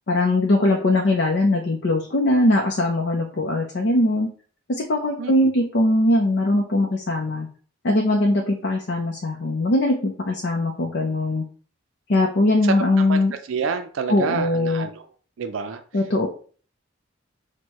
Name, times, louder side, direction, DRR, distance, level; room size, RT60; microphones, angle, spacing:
voice 1, 0.1-4.3 4.7-7.5 7.8-11.4 12.1-13.3 14.1-14.9 15.9-16.3, left 1 dB, 60° left, 1 dB, 0.6 m, -21 dB
voice 2, 13.5-15.0 15.4-15.8, right 5 dB, 80° right, 7 dB, 0.4 m, -27 dB
6.2 x 2.2 x 2.9 m, 0.43 s
head